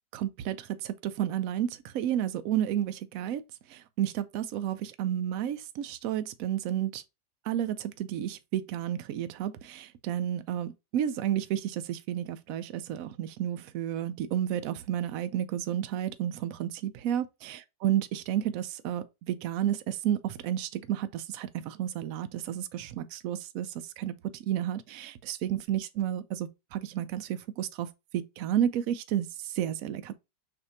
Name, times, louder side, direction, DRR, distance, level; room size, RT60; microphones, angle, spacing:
voice 1, 0.1-3.4 3.7-7.0 7.5-27.9 28.1-30.1, right 11 dB, 75° right, 0.8 m, -31 dB
6.4 x 2.6 x 2.7 m
omnidirectional pair, 1.9 m